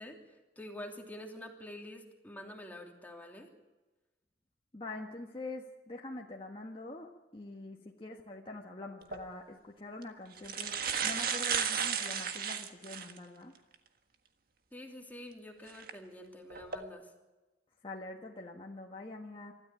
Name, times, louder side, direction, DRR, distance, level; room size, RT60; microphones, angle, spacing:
voice 1, 0.0-3.5 14.7-17.1, left 1 dB, 10° left, 2 dB, 3.0 m, -47 dB
voice 2, 4.7-10.8 11.0-13.5 17.8-19.5, left 2 dB, 30° left, 0 dB, 1.5 m, -45 dB
sound 1, 9.0-9.2 10.0-10.1 10.4-13.2 13.7-13.8 15.7-15.9 16.5-16.8, right 7 dB, 55° right, 1.6 m, -34 dB
25.5 x 13.5 x 8.8 m, 1.1 s
head